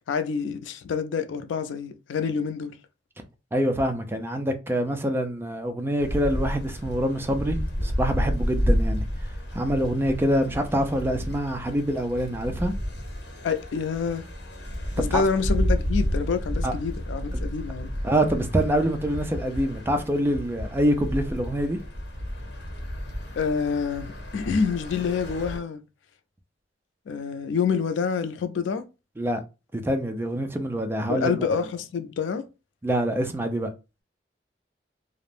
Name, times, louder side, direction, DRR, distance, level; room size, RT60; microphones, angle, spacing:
voice 1, 0.1-2.8 13.4-14.3 15.0-17.9 23.4-25.8 27.1-28.8 31.1-32.4, left 5 dB, 85° left, 0.4 m, -27 dB
voice 2, 3.5-9.0 9.5-12.7 15.1-15.2 16.6-16.7 18.0-21.8 29.2-29.4 29.7-31.5 32.8-33.7, right 1 dB, 15° right, 0.3 m, -25 dB
sound 1, 6.0-25.6, equal, 65° left, 1.0 m, -30 dB
2.4 x 2.0 x 3.2 m
head